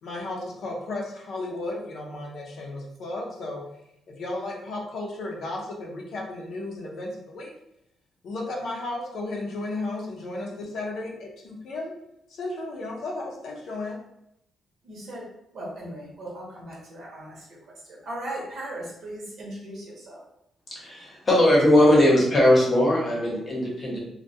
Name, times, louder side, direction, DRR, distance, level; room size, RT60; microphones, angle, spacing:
voice 1, 0.0-3.6 4.1-7.5 8.2-11.9 12.3-14.0, left 2 dB, 65° left, -1 dB, 0.5 m, -34 dB
voice 2, 14.8-15.2 15.5-17.4 17.8-20.2, right 1 dB, 55° right, -4 dB, 0.9 m, -38 dB
voice 3, 20.7-24.0, left 1 dB, 30° left, -4 dB, 0.8 m, -19 dB
2.2 x 2.2 x 2.7 m, 0.77 s
cardioid pair, 145°, 0 cm